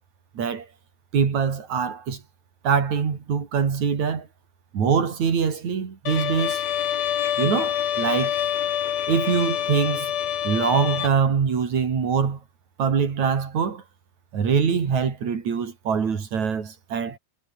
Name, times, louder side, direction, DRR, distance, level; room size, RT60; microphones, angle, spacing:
voice 1, 0.4-0.7 1.1-2.2 2.6-4.3 4.7-6.6 7.4-8.4 9.1-10.1 10.4-12.4 12.8-13.8 14.3-17.2, right 6 dB, 50° right, 4.4 m, -23 dB
Bowed string instrument, 6.1-11.1, left 10 dB, 80° left, 3.8 m, -26 dB
omnidirectional pair, 4.3 m